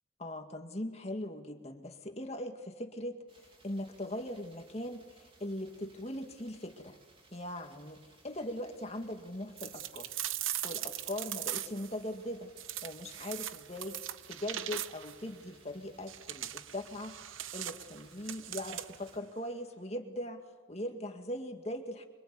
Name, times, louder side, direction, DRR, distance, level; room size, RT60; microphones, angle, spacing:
voice 1, 0.2-7.0 7.3-10.1 10.6-12.5 12.8-17.2 17.5-22.1, left 1 dB, 30° left, 4 dB, 2.1 m, -40 dB
sound 1, 3.3-19.2, right 2 dB, 25° right, 3.3 m, -62 dB
sound 2, 9.6-11.9 12.6-15.2 16.1-19.1, right 12 dB, 85° right, 0.9 m, -40 dB
25.5 x 24.5 x 8.5 m, 1.3 s
head